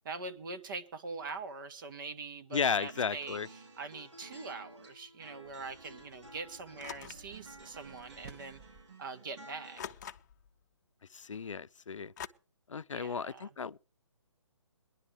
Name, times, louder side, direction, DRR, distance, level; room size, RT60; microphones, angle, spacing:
voice 1, 0.0-8.6 9.0-9.8 12.9-13.5, right 4 dB, 40° right, 1.5 m, -43 dB
voice 2, 2.5-3.5 11.1-12.1 12.7-13.8, left 6 dB, 80° left, 0.5 m, -34 dB
sound 1, 2.7-9.9, right 2 dB, 65° right, 4.8 m, -53 dB
sound 2, 5.4-8.8, right 5 dB, 20° right, 1.6 m, -57 dB
sound 3, 6.8-7.3 8.4-8.5 9.7-10.5 12.2-12.3, left 9 dB, 35° left, 0.7 m, -44 dB
21.0 x 11.0 x 3.3 m
figure-of-eight pair, 150°, 16 cm